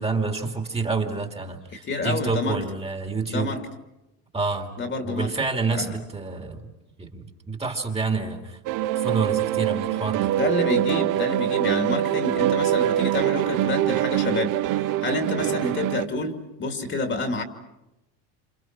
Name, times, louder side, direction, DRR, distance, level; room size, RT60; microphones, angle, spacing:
voice 1, 0.0-3.6 4.3-4.7 5.0-6.7 7.0-8.6 9.0-10.3, right 4 dB, 15° right, 4 dB, 2.5 m, -28 dB
voice 2, 1.9-2.6 3.3-3.6 4.8-5.3 5.7-5.9 10.4-14.5 15.0-17.4, left 2 dB, 30° left, 6 dB, 2.5 m, -28 dB
sound 1, 8.7-16.1, right 12 dB, 60° right, 0.8 m, -24 dB
28.0 x 27.5 x 6.0 m, 0.94 s
cardioid pair, 130°, 37 cm